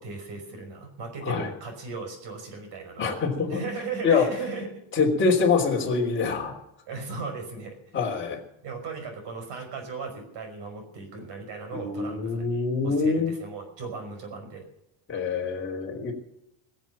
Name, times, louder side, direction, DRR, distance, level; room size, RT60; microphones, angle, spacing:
voice 1, 0.0-3.2 3.5-4.8 6.9-8.0 8.6-14.7, right 4 dB, 55° right, 5 dB, 5.5 m, -37 dB
voice 2, 3.0-3.6 4.0-4.2 4.9-6.6 7.9-8.4 11.7-13.3 15.1-16.1, left 4 dB, 25° left, -1 dB, 3.3 m, -25 dB
22.0 x 7.4 x 7.4 m, 0.82 s
cardioid pair, 160°, 50 cm